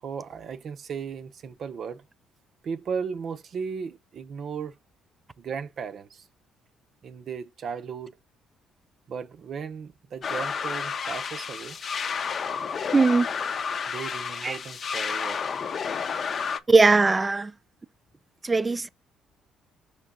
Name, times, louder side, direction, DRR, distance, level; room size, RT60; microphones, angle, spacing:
voice 1, 0.0-2.0 2.6-4.8 5.4-6.2 7.0-8.1 9.1-11.8 13.9-15.4, right 6 dB, 50° right, 0.7 m, -36 dB
sound 1, 10.2-16.6, left 6 dB, 45° left, 0.7 m, -31 dB
voice 2, 12.9-13.3 14.4-14.6 16.7-17.5 18.4-18.9, right 3 dB, 20° right, 0.4 m, -19 dB
6.0 x 3.3 x 5.1 m
cardioid pair, 110°, 0 cm